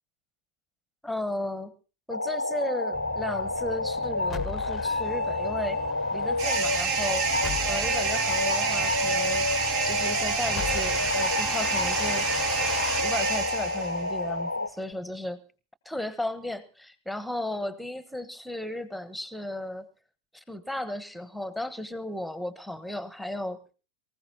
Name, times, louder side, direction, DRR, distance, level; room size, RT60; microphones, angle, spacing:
voice 1, 1.0-1.7 2.1-5.8 6.1-7.3 7.7-9.5 9.8-12.3 13.0-15.4 15.8-19.9 20.3-23.6, left 1 dB, ahead, 1.2 m, -34 dB
sound 1, 2.1-14.7, left 2 dB, 85° left, 0.7 m, -30 dB
sound 2, 2.9-14.4, left 5 dB, 20° left, 0.8 m, -38 dB
sound 3, 6.4-14.1, right 6 dB, 45° right, 1.3 m, -29 dB
24.0 x 15.0 x 2.8 m
figure-of-eight pair, 90°, 0 cm